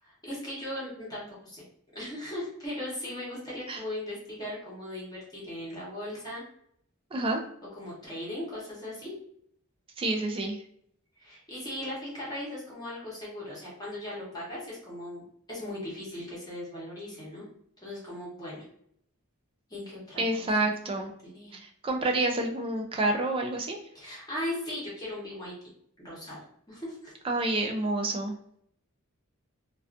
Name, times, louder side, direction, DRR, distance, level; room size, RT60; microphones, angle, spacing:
voice 1, 0.0-1.6 1.9-6.4 7.8-9.1 11.2-17.5 17.8-18.6 19.7-21.6 23.9-25.6 26.0-27.1, left 1 dB, 20° left, -6 dB, 0.8 m, -38 dB
voice 2, 7.1-7.4 10.0-10.6 20.2-21.1 21.5-23.8 27.2-28.3, right 2 dB, 25° right, 3 dB, 0.3 m, -28 dB
2.3 x 2.3 x 2.4 m, 0.69 s
head